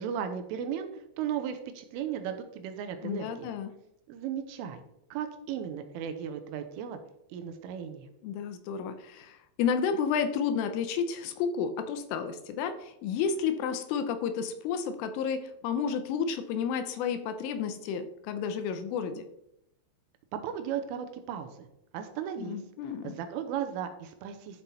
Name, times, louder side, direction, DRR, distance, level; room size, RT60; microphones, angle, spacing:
voice 1, 0.0-3.5 4.1-4.8 5.1-7.0 7.3-8.1 20.3-21.5 21.9-22.6 23.0-24.6, right 8 dB, 80° right, 7 dB, 3.2 m, -35 dB
voice 2, 3.0-3.7 8.2-19.3 22.4-23.1, left 6 dB, 80° left, 9 dB, 3.2 m, -31 dB
12.0 x 5.9 x 4.1 m, 0.81 s
omnidirectional pair, 6.0 m